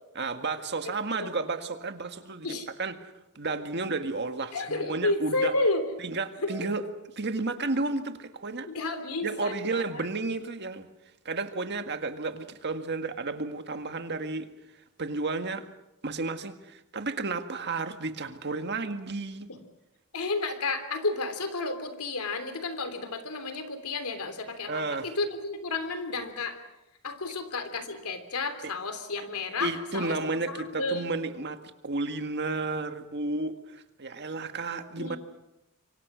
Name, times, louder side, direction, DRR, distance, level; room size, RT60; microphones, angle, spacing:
voice 1, 0.2-5.5 6.0-6.8 7.2-8.7 9.2-10.9 11.3-14.5 15.0-15.7 16.0-19.5 24.7-25.1 29.6-35.2, right 3 dB, 50° right, 8 dB, 1.8 m, -32 dB
voice 2, 4.5-5.8 6.4-6.7 8.7-10.1 19.5-19.6 20.1-26.6 27.0-31.1 34.7-35.2, left 3 dB, 80° left, 9 dB, 3.3 m, -32 dB
26.5 x 24.5 x 6.2 m, 0.94 s
head